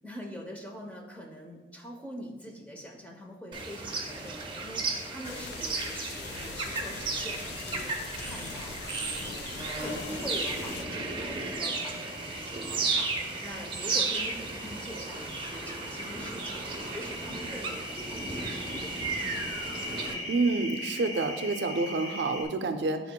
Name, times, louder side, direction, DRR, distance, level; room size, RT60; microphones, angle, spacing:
voice 1, 0.0-9.4 9.8-19.5 20.1-20.4 22.6-22.9, equal, 10° left, 0 dB, 0.7 m, -44 dB
sound 1, 3.5-20.1, right 3 dB, 30° right, 0.7 m, -34 dB
sound 2, 5.2-10.8, left 7 dB, 60° left, 0.3 m, -42 dB
sound 3, 9.8-22.4, left 1 dB, 25° left, 1.1 m, -41 dB
voice 2, 20.3-23.0, right 3 dB, 70° right, 8 dB, 0.4 m, -28 dB
9.8 x 4.3 x 2.2 m, 1.2 s
head